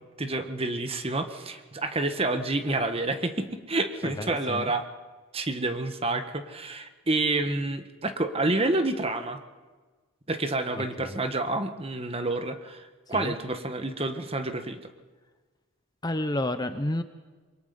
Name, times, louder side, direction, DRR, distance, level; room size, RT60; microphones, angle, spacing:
voice 1, 0.2-4.8 5.3-9.4 10.3-12.8 13.1-14.8, right 2 dB, 25° right, 8 dB, 1.4 m, -28 dB
voice 2, 4.0-4.7 11.0-11.2 13.1-13.3 16.0-17.0, left 1 dB, 20° left, 10 dB, 0.7 m, -30 dB
26.5 x 23.0 x 5.4 m, 1.3 s
head